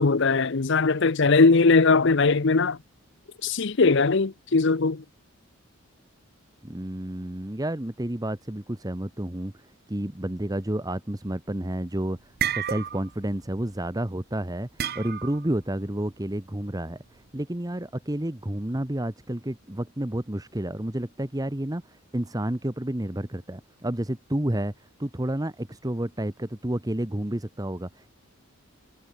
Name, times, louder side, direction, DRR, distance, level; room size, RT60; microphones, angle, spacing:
voice 1, 0.0-2.8 3.4-5.0, left 4 dB, 55° left, 0.7 m, -20 dB
voice 2, 6.6-28.1, right 1 dB, 15° right, 1.1 m, -30 dB
sound 1, 11.8-13.8 14.8-15.5, right 9 dB, 45° right, 0.7 m, -30 dB
head